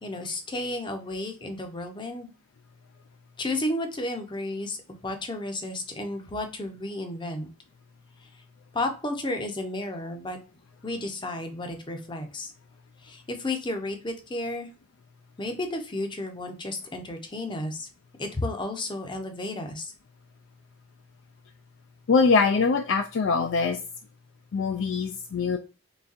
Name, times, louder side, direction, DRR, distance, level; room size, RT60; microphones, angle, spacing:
voice 1, 0.0-2.3 3.4-4.8 5.0-7.5 8.2-8.3 8.7-10.4 10.8-12.5 13.0-14.7 15.4-17.9 18.2-19.9, left 1 dB, 20° left, 5 dB, 0.6 m, -32 dB
voice 2, 22.1-23.8 24.5-25.6, left 4 dB, 55° left, 5 dB, 0.3 m, -23 dB
3.9 x 3.3 x 2.5 m, 0.35 s
head